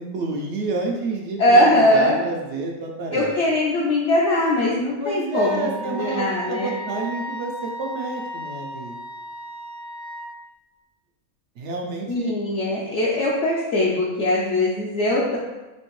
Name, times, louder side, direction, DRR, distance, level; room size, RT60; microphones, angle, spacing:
voice 1, 0.0-3.3 5.0-9.0 11.6-12.3, right 3 dB, 65° right, 0 dB, 0.9 m, -29 dB
voice 2, 1.4-2.2 3.1-6.7 12.1-15.4, left 1 dB, 65° left, -5 dB, 0.9 m, -21 dB
Wind instrument woodwind instrument, 5.4-10.3, equal, 30° right, 0.5 m, -35 dB
4.3 x 2.8 x 3.1 m, 1.1 s
omnidirectional pair, 1.4 m